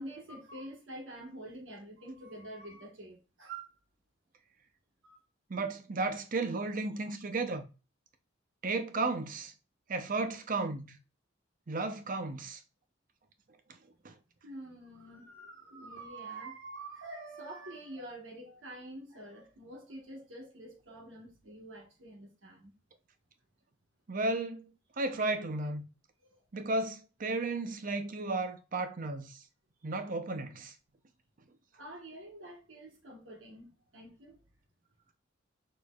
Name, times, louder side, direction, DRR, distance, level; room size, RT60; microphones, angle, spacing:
voice 1, 0.0-3.7 5.0-5.2 14.4-22.7 26.2-26.4 31.7-34.4, right 2 dB, 75° right, 1.3 m, -47 dB
voice 2, 5.5-7.6 8.6-9.5 9.9-11.0 11.7-12.6 14.0-14.1 24.1-24.7 25.0-25.8 26.5-29.4 29.8-30.7, right 3 dB, 45° right, 0.6 m, -34 dB
6.4 x 3.2 x 2.3 m
head